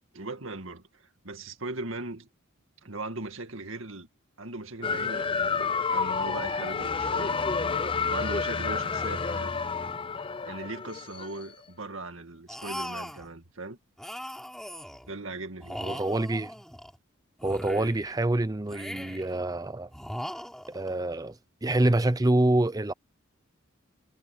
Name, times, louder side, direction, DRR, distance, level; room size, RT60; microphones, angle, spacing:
voice 1, 0.1-2.3 2.8-4.1 4.4-9.6 10.4-13.8 15.1-16.0, right 2 dB, 65° right, 2.3 m, -39 dB
sound 1, 4.8-11.4, left 5 dB, 25° left, 0.6 m, -29 dB
sound 2, 12.5-13.3 14.0-15.1 15.6-17.0 17.4-18.2 18.7-19.4 19.9-20.9, equal, ahead, 3.8 m, -39 dB
voice 2, 15.7-16.5 17.4-19.9 20.7-21.4 21.6-22.9, right 1 dB, 15° right, 0.5 m, -26 dB
head